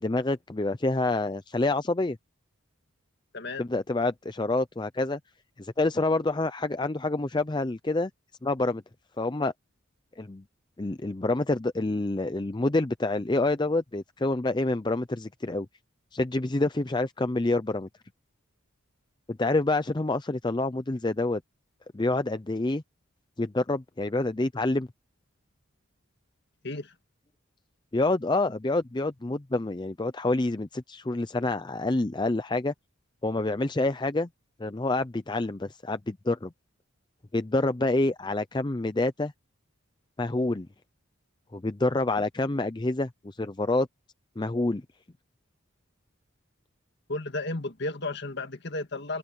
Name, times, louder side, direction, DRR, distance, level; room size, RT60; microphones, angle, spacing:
voice 1, 0.0-2.2 3.6-5.2 5.6-8.1 8.4-8.8 9.2-9.5 10.2-10.4 10.8-15.7 16.1-17.9 19.3-21.4 21.9-22.8 23.4-24.9 27.9-32.7 33.2-34.3 34.6-36.5 37.3-39.3 40.2-40.7 41.5-43.9 44.4-44.8, left 2 dB, 20° left, 0.5 m, -27 dB
voice 2, 3.3-3.6 26.6-26.9 47.1-49.2, left 2 dB, 50° left, 2.1 m, -33 dB
open air
head